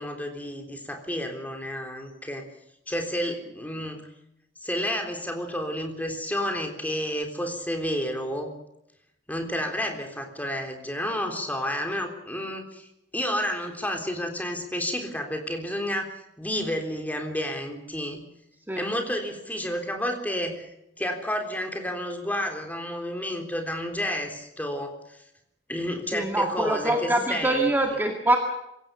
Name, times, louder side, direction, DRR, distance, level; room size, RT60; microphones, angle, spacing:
voice 1, 0.0-2.4 2.9-4.0 4.6-8.5 9.3-12.9 13.1-18.2 18.8-20.7 21.0-25.2 25.7-27.8, equal, 10° left, 4 dB, 3.6 m, -30 dB
voice 2, 26.1-28.4, right 1 dB, 10° right, 2 dB, 2.1 m, -24 dB
26.0 x 16.5 x 6.9 m, 0.81 s
head